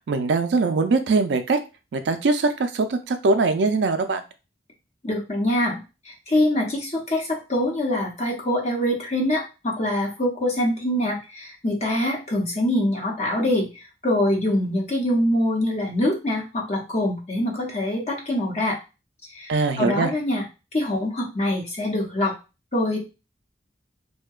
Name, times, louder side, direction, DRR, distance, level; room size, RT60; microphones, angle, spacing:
voice 1, 0.1-1.6 1.9-4.2 19.5-20.1, right 3 dB, 80° right, 8 dB, 0.4 m, -22 dB
voice 2, 5.0-18.8 19.3-19.5 19.8-20.4 20.7-22.3 22.7-23.0, left 1 dB, 40° left, -1 dB, 0.7 m, -24 dB
2.6 x 2.1 x 2.3 m, 0.29 s
head